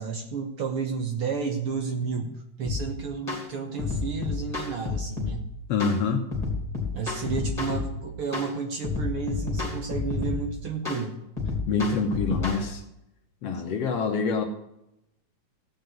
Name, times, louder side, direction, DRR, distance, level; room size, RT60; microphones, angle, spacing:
voice 1, 0.0-5.4 6.9-11.2, right 5 dB, 55° right, 4 dB, 1.8 m, -31 dB
sound 1, 2.6-2.9 3.3-3.5 3.8-5.4 5.8-6.0 6.3-7.9 8.3-8.5 8.8-10.4 10.9-11.0 11.4-12.6, left 4 dB, 15° left, 3.2 m, -30 dB
voice 2, 5.7-6.3 11.7-12.8 13.4-14.4, left 5 dB, 60° left, 4 dB, 2.0 m, -26 dB
16.0 x 5.5 x 9.2 m, 0.86 s
omnidirectional pair, 3.5 m